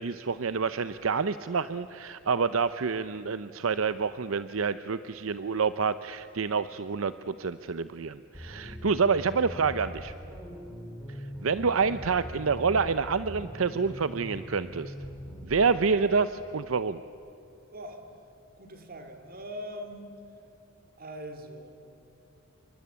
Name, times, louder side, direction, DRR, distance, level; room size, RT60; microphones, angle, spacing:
voice 1, 0.0-10.1 11.4-14.9 15.4-17.0, right 5 dB, 75° right, 13 dB, 0.7 m, -28 dB
sound 1, 8.3-15.7, equal, 5° left, 4.4 m, -42 dB
voice 2, 17.7-18.0 18.6-20.1 21.0-21.8, equal, 45° right, 6 dB, 3.4 m, -42 dB
28.5 x 24.5 x 8.5 m, 2.8 s
head